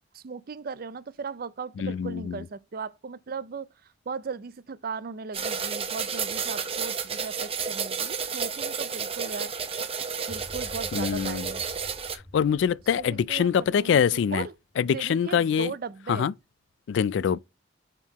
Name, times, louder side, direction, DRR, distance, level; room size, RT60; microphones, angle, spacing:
voice 1, 0.1-3.7 4.1-9.7 10.3-11.7 12.9-16.3, right 5 dB, 50° right, 0.5 m, -37 dB
voice 2, 1.8-2.4 10.9-11.5 12.3-14.5 14.8-15.7 16.1-16.3 16.9-17.4, left 7 dB, 70° left, 0.3 m, -24 dB
sound 1, 5.3-12.2, right 6 dB, 30° right, 0.9 m, -31 dB
sound 2, 10.3-14.6, left 1 dB, 15° left, 2.1 m, -47 dB
7.1 x 4.5 x 2.9 m
head